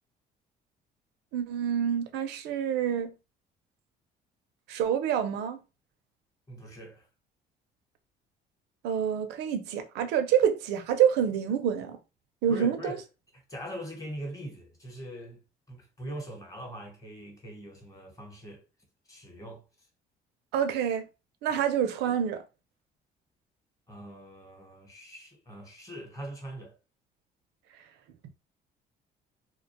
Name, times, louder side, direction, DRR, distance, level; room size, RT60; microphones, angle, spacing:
voice 1, 1.3-3.1 4.7-5.6 8.8-12.0 12.4-13.0 20.5-21.1 21.4-22.4, right 8 dB, 85° right, 0.5 m, -27 dB
voice 2, 6.5-7.1 12.5-13.0 13.3-15.4 15.7-18.6 19.1-19.6 21.5-21.6 23.9-26.8, equal, 20° left, 1.0 m, -42 dB
2.4 x 2.1 x 2.8 m
cardioid pair, 110°, 17 cm